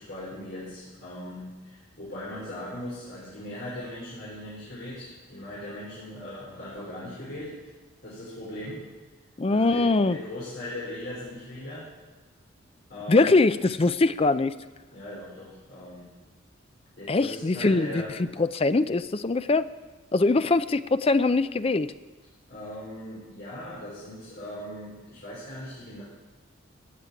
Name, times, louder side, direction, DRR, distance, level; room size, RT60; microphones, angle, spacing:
voice 1, 0.0-7.7 8.0-8.8 9.4-11.9 12.9-13.4 14.9-16.1 17.0-18.1 22.5-26.0, left 1 dB, 50° left, -7 dB, 4.5 m, -39 dB
voice 2, 9.4-10.2 13.1-14.5 17.1-19.7 20.1-21.9, left 3 dB, 25° left, 12 dB, 0.4 m, -22 dB
16.0 x 7.4 x 9.5 m, 1.2 s
head